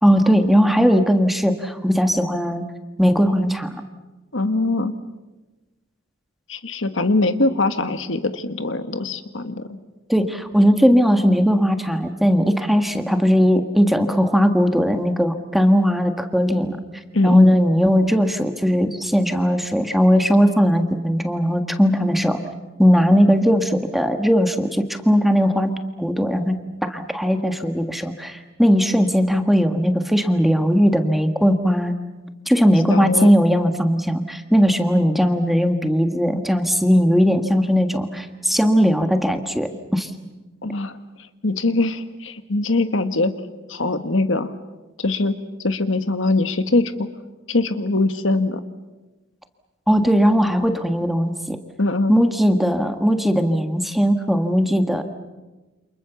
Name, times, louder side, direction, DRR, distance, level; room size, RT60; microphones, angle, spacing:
voice 1, 0.0-2.6 3.0-3.7 10.1-16.8 17.2-22.4 22.8-25.7 26.0-26.6 26.8-31.9 32.4-40.1 49.9-51.6 52.1-55.0, equal, ahead, 6 dB, 1.6 m, -18 dB
voice 2, 4.3-4.9 6.5-9.7 17.1-17.6 32.9-33.3 40.6-41.0 41.4-43.3 43.7-44.5 45.0-45.4 45.6-47.1 47.5-48.6 51.8-52.1, left 2 dB, 70° left, 10 dB, 1.5 m, -22 dB
29.5 x 27.5 x 7.1 m, 1.1 s
head